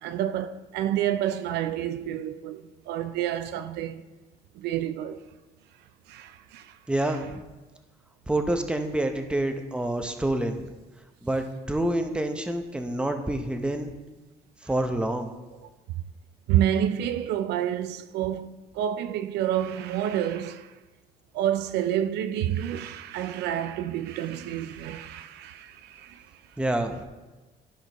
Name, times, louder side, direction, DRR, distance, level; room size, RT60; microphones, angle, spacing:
voice 1, 0.0-4.0 4.6-5.2 6.1-6.7 16.5-20.7 21.3-26.2, right 11 dB, 80° right, 0.4 m, -29 dB
voice 2, 6.9-7.4 8.3-10.7 11.2-13.9 14.6-15.3 26.6-27.0, right 1 dB, 5° right, 0.8 m, -27 dB
13.5 x 5.0 x 3.0 m
cardioid pair, 110°, 17 cm